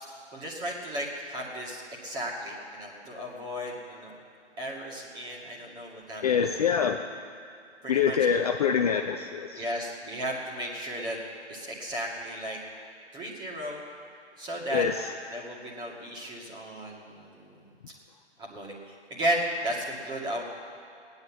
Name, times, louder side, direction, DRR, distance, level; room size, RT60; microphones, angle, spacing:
voice 1, 0.3-4.1 4.6-6.5 7.8-8.2 9.6-11.2 11.5-12.6 13.1-13.8 14.4-14.9 15.3-17.5 18.4-20.4, equal, 10° right, -2 dB, 2.2 m, -34 dB
voice 2, 6.2-7.1 7.9-9.6 14.7-15.1, left 7 dB, 35° left, 4 dB, 0.6 m, -25 dB
18.5 x 9.6 x 7.4 m, 2.5 s
figure-of-eight pair, 135°, 34 cm